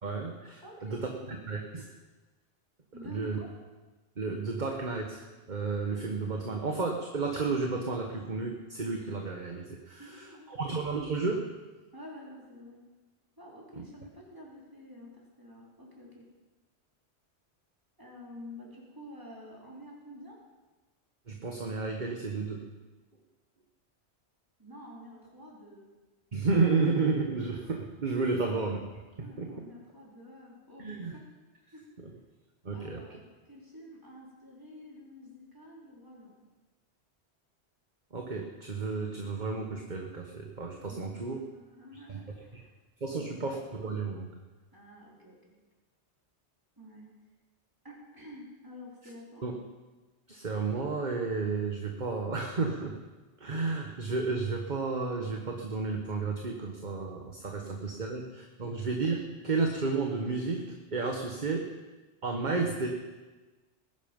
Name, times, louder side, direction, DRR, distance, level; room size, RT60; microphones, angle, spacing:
voice 1, 0.0-1.9 3.0-3.4 4.2-11.4 21.3-22.6 26.3-28.8 29.2-29.5 30.8-31.1 32.6-33.0 38.1-41.4 42.1-42.2 43.0-44.3 49.4-49.5 50.3-53.0 53.4-60.6 60.9-61.7 62.2-62.9, right 4 dB, 45° right, 2 dB, 1.4 m, -32 dB
voice 2, 0.6-1.2 2.9-3.5 10.0-10.7 11.9-12.8 13.4-16.2 18.0-20.4 24.6-25.9 29.2-31.2 31.6-31.9 32.7-36.4 40.9-42.7 43.1-43.6 44.7-45.4 46.8-47.1 47.8-49.5 57.6-57.8 58.6-58.8, left 1 dB, 20° right, -4 dB, 4.0 m, -49 dB
20.0 x 11.0 x 5.3 m, 1.2 s
omnidirectional pair, 1.1 m